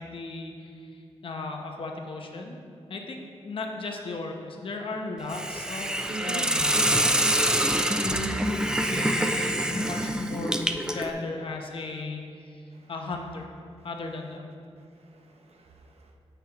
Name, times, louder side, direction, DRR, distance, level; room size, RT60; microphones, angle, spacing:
voice 1, 0.0-2.6 2.9-7.3 8.0-13.5 13.8-14.5, left 3 dB, 50° left, 2 dB, 0.9 m, -36 dB
Hiss, 5.3-11.1, right 1 dB, 5° right, 0.3 m, -26 dB
voice 2, 6.1-6.5 7.0-8.0 12.7-12.9 15.1-16.1, right 4 dB, 65° right, 2 dB, 0.9 m, -44 dB
9.3 x 8.1 x 3.0 m, 2.5 s
wide cardioid pair, 160°, 11 cm